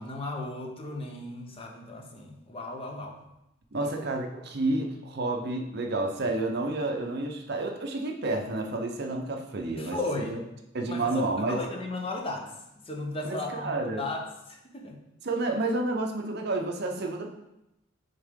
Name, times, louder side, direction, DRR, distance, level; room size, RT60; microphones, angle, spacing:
voice 1, 0.0-3.2 3.8-3.9 9.8-10.5 10.9-11.1 11.5-12.5 12.8-15.0, left 2 dB, 25° left, 1 dB, 0.8 m, -35 dB
voice 2, 3.7-10.4 10.7-11.6 13.2-14.0 15.2-17.3, right 2 dB, 50° right, 3 dB, 0.7 m, -30 dB
8.1 x 3.6 x 3.6 m, 0.90 s
head